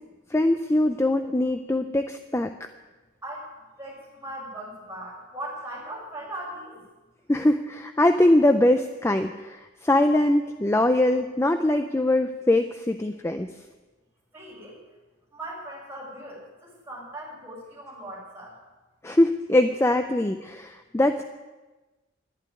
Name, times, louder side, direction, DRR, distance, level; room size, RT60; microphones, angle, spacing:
voice 1, 0.3-2.5 7.3-13.5 19.0-21.2, left 1 dB, 15° left, 7 dB, 0.4 m, -22 dB
voice 2, 3.8-6.8 14.3-14.8 15.3-18.5, right 1 dB, 10° right, -6 dB, 6.1 m, -39 dB
11.5 x 11.5 x 9.1 m, 1.2 s
head